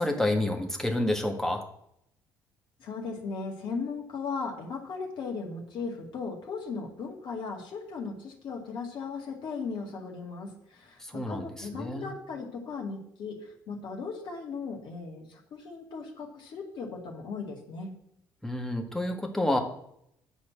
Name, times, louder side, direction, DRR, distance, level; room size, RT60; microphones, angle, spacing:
voice 1, 0.0-1.6 11.0-12.1 18.4-19.6, left 1 dB, 5° left, 2 dB, 1.6 m, -29 dB
voice 2, 2.8-17.9, left 4 dB, 50° left, 0 dB, 2.1 m, -37 dB
9.8 x 4.3 x 6.3 m, 0.74 s
figure-of-eight pair, 45°, 10 cm